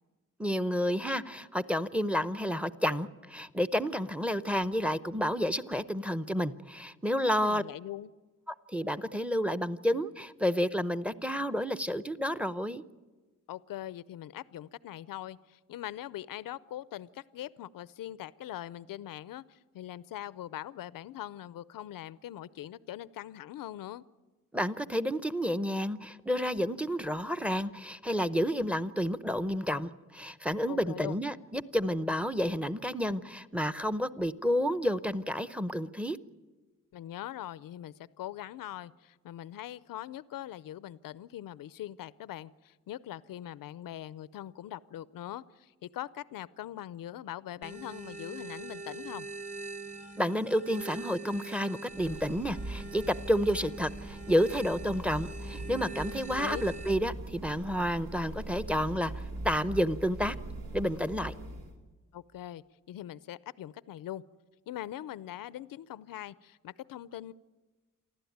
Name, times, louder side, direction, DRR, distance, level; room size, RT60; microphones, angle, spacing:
voice 1, 0.4-7.6 8.5-12.8 24.5-36.2 50.2-60.4 60.7-61.3, equal, 5° right, 14 dB, 0.7 m, -30 dB
voice 2, 7.4-8.1 13.5-24.0 30.7-31.2 36.9-49.3 56.4-56.6 62.1-64.2 64.7-67.3, left 12 dB, 90° left, 18 dB, 0.6 m, -42 dB
sound 1, 47.6-56.9, right 3 dB, 25° right, 1.6 m, -43 dB
sound 2, 51.9-61.7, right 1 dB, 90° right, 3.4 m, -42 dB
28.0 x 12.0 x 9.4 m, 1.3 s
wide cardioid pair, 120°, 33 cm